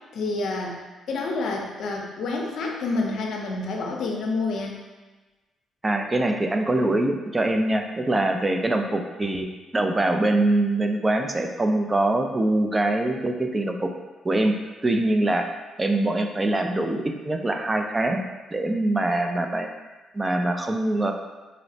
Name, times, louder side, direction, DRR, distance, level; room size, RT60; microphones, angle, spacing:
voice 1, 0.1-0.8 1.1-4.7, left 3 dB, 70° left, 0 dB, 0.5 m, -28 dB
voice 2, 5.8-9.5 9.7-13.9 14.2-14.6 14.8-15.5 15.8-18.2 18.5-19.7 20.1-21.1, right 2 dB, 20° right, 4 dB, 0.3 m, -23 dB
4.1 x 2.0 x 2.6 m, 1.2 s
cardioid pair, 90°, 0 cm